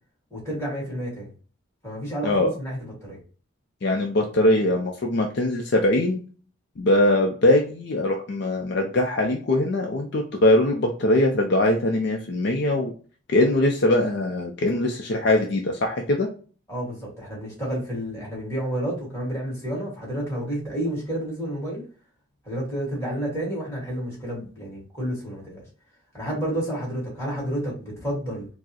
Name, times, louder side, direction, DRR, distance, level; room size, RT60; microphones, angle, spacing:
voice 1, 0.3-1.3 1.8-3.2 16.7-21.8 22.4-25.6 26.1-28.5, right 1 dB, 15° left, -5 dB, 1.8 m, -30 dB
voice 2, 3.8-6.2 6.8-12.9 13.3-16.3, left 1 dB, 55° left, 2 dB, 0.5 m, -21 dB
4.4 x 2.0 x 2.8 m, 0.39 s
head